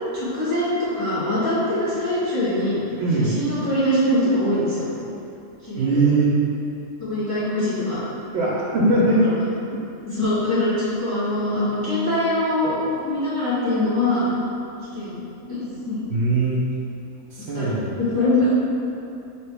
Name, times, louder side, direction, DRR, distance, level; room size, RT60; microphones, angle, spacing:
voice 1, 0.1-2.8 3.3-4.9 5.6-6.0 7.0-8.0 9.1-9.3 10.1-14.3 14.9-15.2 15.5-16.0 17.5-18.5, left 1 dB, 15° left, -13 dB, 1.4 m, -23 dB
voice 2, 3.0-3.3 5.8-6.3 8.3-9.2 16.1-16.6 17.3-18.0, right 2 dB, 65° right, -5 dB, 0.7 m, -20 dB
3.8 x 2.9 x 3.3 m, 2.7 s
omnidirectional pair, 1.4 m